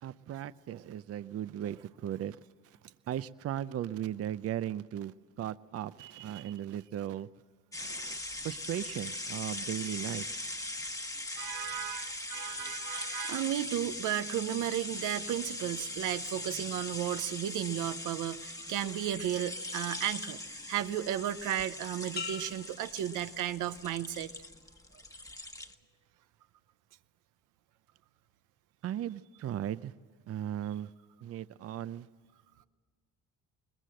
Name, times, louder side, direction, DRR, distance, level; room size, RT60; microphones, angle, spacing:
voice 1, 0.0-2.4 3.1-7.3 7.8-8.2 8.4-10.3 28.8-29.9 30.3-30.9 31.2-32.1, right 11 dB, 50° right, 16 dB, 0.5 m, -37 dB
voice 2, 6.0-6.5 11.4-24.3, right 12 dB, 90° right, 11 dB, 0.8 m, -34 dB
sound 1, 7.7-25.7, left 2 dB, 10° left, 1.2 m, -40 dB
sound 2, 22.2-23.9 24.4-24.9, left 6 dB, 35° left, 1.1 m, -44 dB
21.5 x 20.0 x 7.7 m, 1.5 s
cardioid pair, 90°, 30 cm